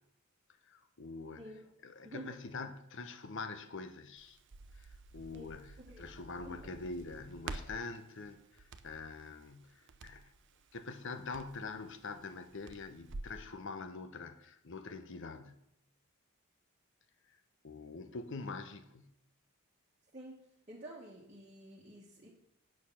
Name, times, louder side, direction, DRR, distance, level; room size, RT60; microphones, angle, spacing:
voice 1, 0.6-1.6 1.8-4.4 4.8-10.3 10.7-15.6 17.6-19.1, left 3 dB, 60° left, 0.9 m, -45 dB
Crackle, 4.2-13.4, right 3 dB, 55° right, 0.6 m, -50 dB
voice 2, 20.7-22.3, right 1 dB, 30° right, 1.5 m, -49 dB
9.0 x 6.6 x 5.8 m
head